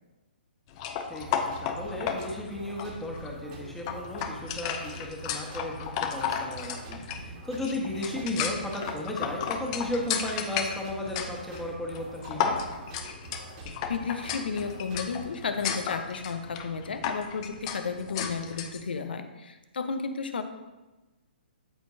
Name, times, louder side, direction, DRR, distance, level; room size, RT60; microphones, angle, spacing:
sound 1, 0.7-18.8, left 7 dB, 35° left, 0.7 m, -34 dB
voice 1, 1.1-12.6, left 1 dB, 5° left, -2 dB, 1.4 m, -35 dB
sound 2, 1.2-15.2, right 3 dB, 45° right, 2.0 m, -45 dB
voice 2, 13.9-20.4, left 5 dB, 65° left, 9 dB, 0.8 m, -33 dB
13.0 x 4.4 x 2.8 m, 1.1 s
figure-of-eight pair, 130°, 6 cm